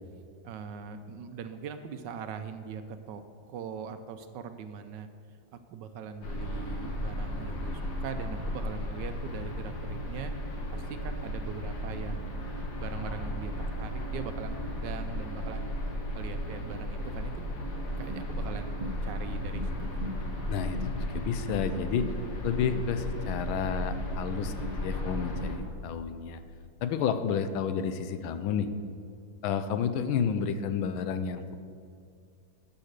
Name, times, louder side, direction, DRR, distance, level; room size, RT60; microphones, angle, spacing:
voice 1, 0.4-3.2 3.5-5.1 5.7-10.3 10.7-15.7 16.1-17.5 18.0-20.0, right 6 dB, 75° right, 9 dB, 1.1 m, -41 dB
sound 1, 6.2-25.6, left 1 dB, 55° left, 1.8 m, -35 dB
sound 2, 18.1-25.8, equal, 45° right, 0.5 m, -42 dB
voice 2, 20.5-22.1 22.4-24.5 24.8-26.4 26.8-28.7 29.4-31.6, left 7 dB, 90° left, 10 dB, 1.5 m, -30 dB
12.0 x 5.7 x 6.6 m, 2.3 s
omnidirectional pair, 2.2 m